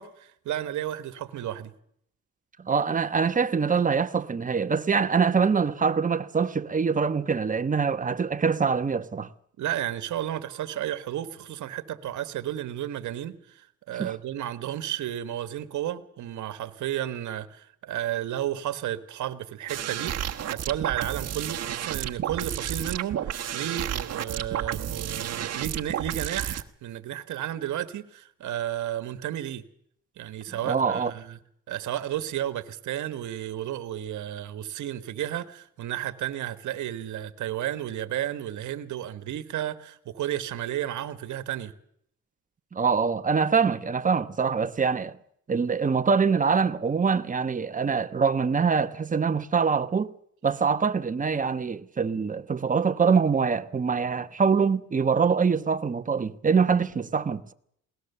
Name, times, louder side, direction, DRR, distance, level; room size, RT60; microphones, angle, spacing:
voice 1, 0.0-1.7 9.6-29.6 30.2-31.4 31.7-41.7, right 12 dB, 75° right, 1.4 m, -32 dB
voice 2, 2.6-9.3 14.0-14.1 30.6-31.1 42.7-45.2 45.5-50.1 50.4-57.5, right 5 dB, 25° right, 1.1 m, -24 dB
sound 1, 19.7-26.6, right 10 dB, 55° right, 1.3 m, -31 dB
21.0 x 18.5 x 6.8 m
cardioid pair, 90°, 30 cm